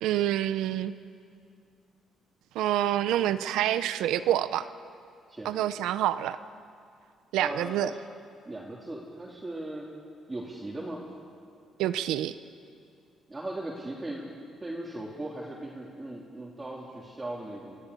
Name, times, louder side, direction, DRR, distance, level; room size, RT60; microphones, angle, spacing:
voice 1, 0.0-0.9 2.5-4.7 5.4-6.4 7.3-7.9 11.8-12.3, right 12 dB, 90° right, 12 dB, 0.7 m, -27 dB
voice 2, 7.4-7.9 8.5-9.9 10.3-11.0 13.3-14.2 14.6-17.8, right 1 dB, 20° right, -4 dB, 3.3 m, -38 dB
27.5 x 16.0 x 8.4 m, 2.4 s
cardioid pair, 90°, 0 cm